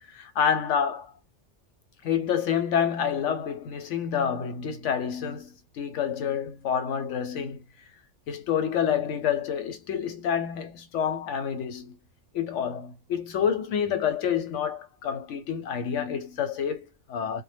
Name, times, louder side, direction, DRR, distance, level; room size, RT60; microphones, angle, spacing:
voice 1, 0.1-1.1 2.0-7.6 8.3-12.0 12.3-17.4, left 8 dB, 80° left, 0.9 m, -28 dB
2.1 x 2.1 x 3.3 m
omnidirectional pair, 1.2 m